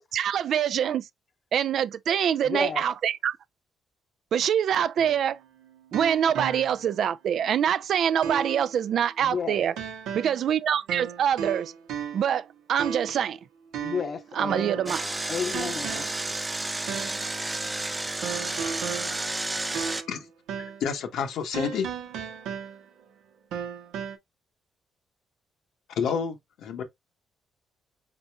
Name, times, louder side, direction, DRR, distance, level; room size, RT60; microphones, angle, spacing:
voice 1, 0.1-1.1 1.5-3.4 4.3-5.4 5.9-9.7 10.1-11.7 12.1-13.4 14.3-15.0, right 9 dB, 65° right, 0.3 m, -25 dB
voice 2, 2.4-2.9 9.2-9.6 13.8-15.0 15.3-16.1, left 6 dB, 45° left, 0.8 m, -32 dB
sound 1, 5.0-7.0 7.4-7.5 8.2-8.7 9.8-10.5 10.9-12.4 12.8-13.3 13.7-15.0 15.5-16.3 16.9-17.3 18.2-20.2 20.5-20.9 21.5-23.0 23.5-24.2, right 7 dB, 90° right, 0.9 m, -35 dB
Engine, 14.9-20.0, right 2 dB, 15° right, 0.6 m, -31 dB
voice 3, 20.8-21.9 26.0-26.8, left 6 dB, 80° left, 1.0 m, -29 dB
4.9 x 4.2 x 2.3 m
cardioid pair, 90°, 0 cm